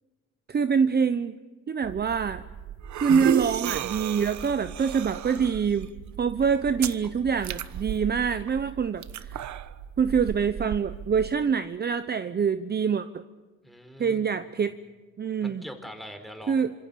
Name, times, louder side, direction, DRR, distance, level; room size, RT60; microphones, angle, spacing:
voice 1, 0.5-1.4 1.7-2.4 2.9-5.9 6.2-9.4 10.0-13.2 14.0-14.7 15.2-15.6 16.5-16.7, right 6 dB, 35° right, 11 dB, 0.9 m, -25 dB
sound 1, 1.8-11.3, right 9 dB, 70° right, 1.3 m, -34 dB
voice 2, 13.6-14.6 15.4-16.6, equal, ahead, 6 dB, 4.4 m, -43 dB
27.5 x 26.5 x 6.9 m, 1.3 s
cardioid pair, 130°, 30 cm